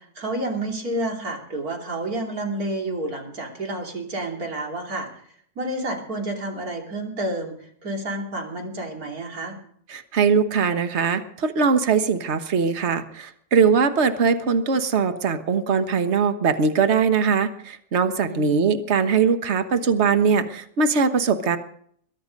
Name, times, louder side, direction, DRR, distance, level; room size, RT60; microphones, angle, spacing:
voice 1, 0.0-5.1 5.6-9.6 18.3-18.6, right 1 dB, 60° right, 1 dB, 3.4 m, -30 dB
voice 2, 9.9-21.6, right 5 dB, 45° right, 9 dB, 1.4 m, -21 dB
22.0 x 12.5 x 5.3 m, 0.63 s
omnidirectional pair, 1.8 m